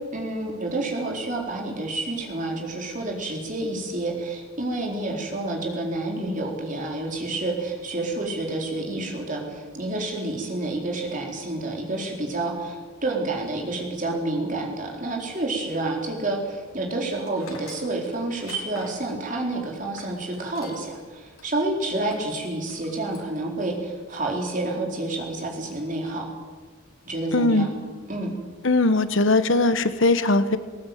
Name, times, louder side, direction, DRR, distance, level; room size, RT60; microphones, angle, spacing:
voice 1, 0.1-26.3 27.1-27.7 28.1-28.3, right 2 dB, 35° right, 0 dB, 4.3 m, -29 dB
Tools, 17.2-21.0 21.3-21.5 22.0-22.3 22.7-23.3, left 3 dB, 85° left, 4.4 m, -45 dB
voice 2, 27.3-27.7 28.6-30.6, left 2 dB, 60° left, 12 dB, 1.1 m, -20 dB
19.5 x 18.5 x 9.3 m, 1.4 s
head